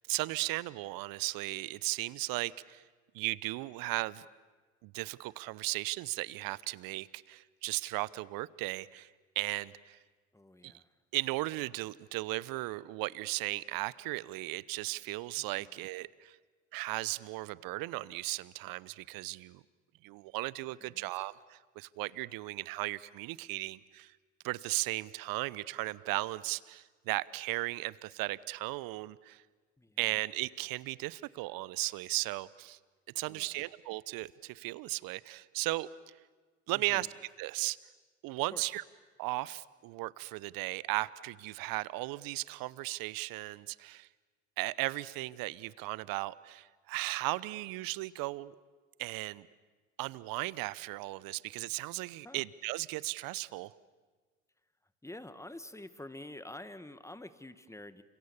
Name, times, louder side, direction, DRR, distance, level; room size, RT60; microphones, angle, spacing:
voice 1, 0.1-2.8 3.1-4.3 4.8-9.1 9.4-10.0 10.6-10.8 11.1-16.4 16.7-19.6 20.0-24.1 24.4-29.4 30.0-32.8 33.1-36.1 36.7-37.1 37.4-37.8 38.2-38.8 39.2-44.1 44.6-48.6 49.0-49.5 50.0-53.7, right 20 dB, 60° right, 20 dB, 0.9 m, -36 dB
voice 2, 10.3-10.9 15.4-15.7 20.8-21.2 29.8-30.2 33.2-33.7 36.7-37.1 38.5-38.8 52.2-52.4 55.0-58.0, left 1 dB, 5° left, 13 dB, 1.5 m, -48 dB
29.5 x 26.5 x 7.1 m, 1.4 s
hypercardioid pair, 60°, 39 cm